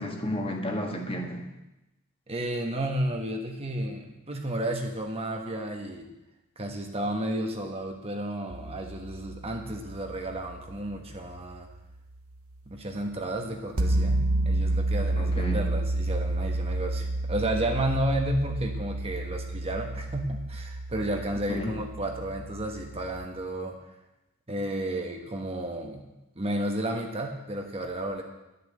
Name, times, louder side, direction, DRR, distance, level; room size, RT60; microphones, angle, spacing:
voice 1, 0.0-1.4 15.2-15.6 21.5-21.7, equal, 25° left, 2 dB, 1.6 m, -32 dB
voice 2, 2.3-6.1 6.6-11.7 12.7-23.7 24.5-26.1 26.4-28.2, right 1 dB, 25° right, 3 dB, 1.3 m, -32 dB
sound 1, 8.5-11.8 13.8-23.3, right 2 dB, 70° right, 1.1 m, -30 dB
11.5 x 6.8 x 8.8 m, 0.97 s
head